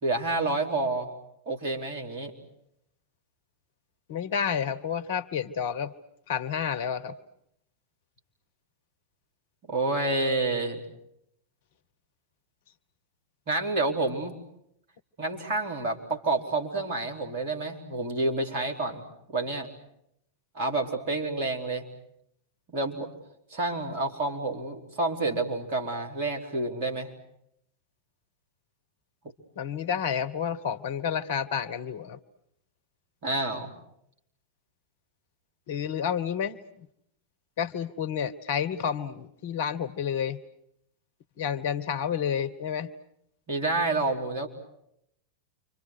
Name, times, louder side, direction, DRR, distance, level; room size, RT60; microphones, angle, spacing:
voice 1, 0.0-1.1 1.5-2.3 9.7-10.8 13.5-14.4 15.2-19.7 20.5-21.8 22.7-23.1 23.5-27.1 33.2-33.7 43.5-44.5, right 2 dB, 50° right, 2 dB, 4.7 m, -29 dB
voice 2, 4.1-5.9 6.3-7.1 29.6-32.2 35.7-36.6 37.6-40.4 41.4-42.9, left 8 dB, 55° left, 13 dB, 1.3 m, -30 dB
29.5 x 26.0 x 6.5 m, 0.75 s
figure-of-eight pair, 90°, 0 cm